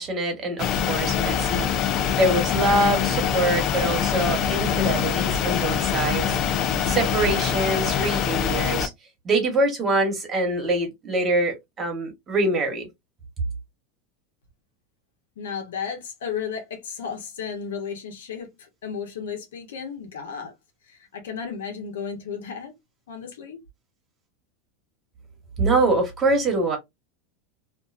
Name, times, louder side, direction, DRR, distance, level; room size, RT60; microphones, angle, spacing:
voice 1, 0.0-1.7 2.1-8.9 9.2-12.9 25.6-26.8, right 2 dB, 30° right, 1.3 m, -24 dB
sound 1, 0.6-8.9, left 8 dB, 45° left, 0.4 m, -24 dB
voice 2, 15.4-20.5 20.9-22.7 23.1-23.6, left 6 dB, 85° left, 1.0 m, -34 dB
2.6 x 2.2 x 2.5 m
supercardioid pair, 110°, 0 cm